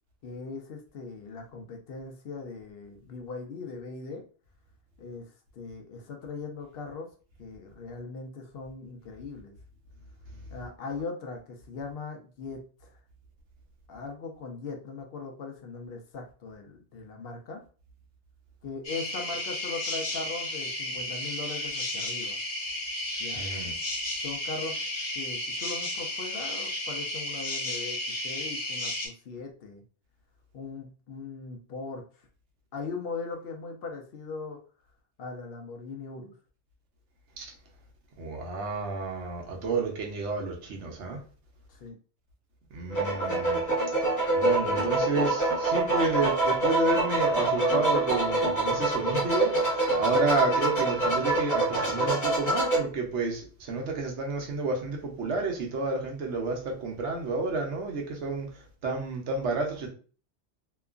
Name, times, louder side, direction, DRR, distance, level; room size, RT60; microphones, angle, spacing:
voice 1, 0.2-4.2 5.0-7.1 7.4-9.5 10.5-13.0 13.9-17.6 18.6-22.4 23.2-23.4 24.2-24.8 25.1-28.0 28.2-29.8 30.5-32.0 32.7-34.6 35.2-36.3 41.7-42.0, left 4 dB, 65° left, 3 dB, 0.7 m, -39 dB
sound 1, 18.8-29.1, left 1 dB, 85° left, 1.1 m, -33 dB
voice 2, 23.3-23.7 37.4-37.5 38.2-41.2 42.7-43.6 44.3-58.5 58.8-59.9, right 3 dB, 85° right, 1 dB, 1.1 m, -30 dB
sound 2, 42.9-52.8, right 2 dB, 20° left, 0.6 m, -26 dB
2.9 x 2.4 x 2.3 m, 0.39 s
omnidirectional pair, 1.1 m